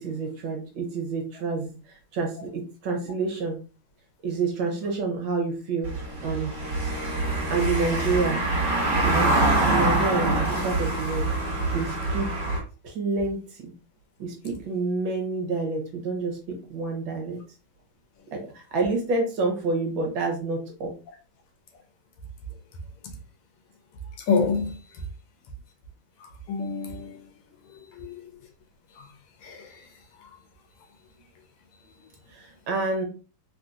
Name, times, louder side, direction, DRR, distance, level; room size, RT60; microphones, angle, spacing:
voice 1, 0.0-3.6 4.2-6.5 7.5-8.4 9.0-9.3 9.6-11.3 11.7-12.3 12.8-13.7 14.2-17.4 18.3-18.4 18.7-20.9 32.3-33.1, right 3 dB, 65° right, 1.6 m, -28 dB
Car passing by / Engine, 5.8-12.6, right 2 dB, 40° right, 1.5 m, -25 dB
voice 2, 24.3-24.7 26.5-27.2 28.0-28.2 29.4-29.6, left 5 dB, 85° left, 1.6 m, -26 dB
3.8 x 2.7 x 2.4 m
omnidirectional pair, 2.4 m